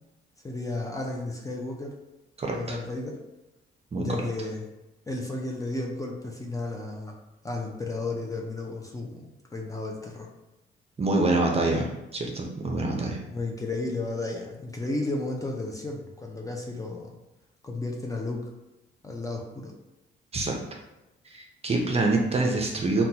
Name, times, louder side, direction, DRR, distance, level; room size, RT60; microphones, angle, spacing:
voice 1, 0.4-1.9 2.5-3.2 4.0-4.7 5.1-7.2 7.4-10.3 13.3-17.1 17.6-18.5 19.0-19.7, left 2 dB, 15° left, 0 dB, 0.5 m, -33 dB
voice 2, 2.4-2.8 3.9-4.0 11.0-13.2 20.3-20.6 21.3-23.1, right 2 dB, 30° right, 1 dB, 0.6 m, -26 dB
3.7 x 2.3 x 2.8 m, 0.99 s
cardioid pair, 90°, 20 cm